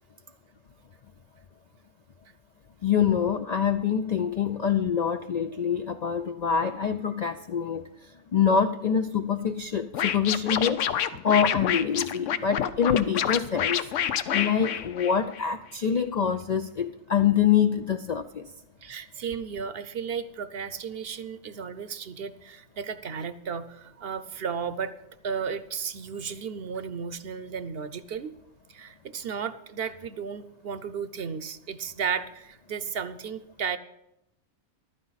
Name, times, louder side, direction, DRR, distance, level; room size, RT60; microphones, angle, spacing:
voice 1, 2.8-7.9 8.3-10.9 11.2-13.9 14.3-18.5, left 7 dB, 60° left, 8 dB, 0.4 m, -25 dB
Scratching (performance technique), 9.9-15.4, left 9 dB, 80° left, 1.0 m, -28 dB
voice 2, 18.8-24.9 25.2-28.3 28.7-33.8, right 6 dB, 55° right, 12 dB, 0.9 m, -34 dB
14.5 x 12.0 x 4.1 m, 0.86 s
omnidirectional pair, 1.3 m